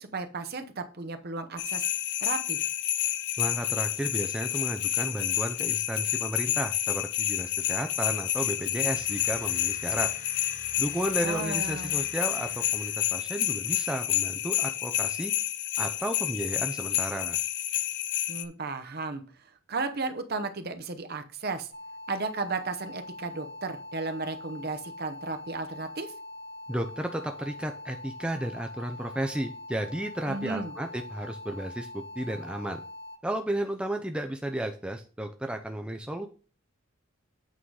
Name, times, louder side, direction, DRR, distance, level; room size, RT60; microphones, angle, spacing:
voice 1, 0.0-1.9 2.2-2.6 11.2-12.0 18.3-19.2 19.7-21.7 22.1-26.1 30.3-30.7, right 3 dB, 50° right, 7 dB, 0.8 m, -34 dB
sound 1, 1.6-18.5, left 12 dB, 55° left, 0.5 m, -29 dB
voice 2, 3.4-10.1 10.4-15.3 15.8-17.4 26.7-32.8 33.2-36.3, right 1 dB, 5° right, 5 dB, 0.4 m, -33 dB
sound 2, 8.9-13.6, left 2 dB, 35° left, 1.0 m, -49 dB
sound 3, 21.7-33.1, left 2 dB, 70° left, 4.1 m, -43 dB
8.4 x 3.8 x 4.7 m, 0.38 s
head